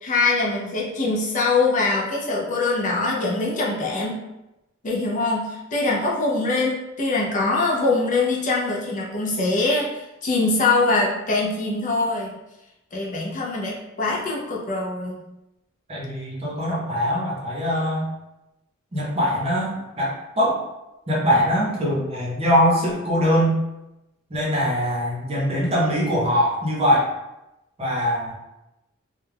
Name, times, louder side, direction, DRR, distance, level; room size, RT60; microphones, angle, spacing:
voice 1, 0.0-4.2 4.8-12.3 12.9-15.2, left 3 dB, 40° left, -3 dB, 0.5 m, -23 dB
voice 2, 15.9-18.1 18.9-20.6 21.1-23.6 24.3-27.1 27.8-28.3, equal, 30° right, -5 dB, 0.7 m, -22 dB
2.3 x 2.1 x 3.2 m, 0.94 s
head